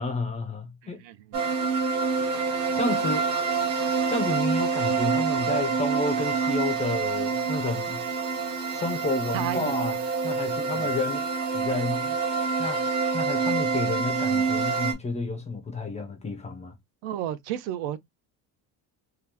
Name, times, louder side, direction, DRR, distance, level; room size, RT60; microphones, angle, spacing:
voice 1, 0.0-1.0 2.8-3.3 4.1-8.0 8.7-10.0 10.2-11.3 11.5-12.2 12.6-12.9 13.1-16.8, left 3 dB, 20° left, 0.3 m, -30 dB
voice 2, 1.0-1.4 9.3-9.7 10.7-10.9 17.0-18.0, right 11 dB, 80° right, 0.6 m, -32 dB
sound 1, 1.3-14.9, right 5 dB, 45° right, 0.8 m, -27 dB
2.9 x 2.3 x 3.4 m
cardioid pair, 170°, 42 cm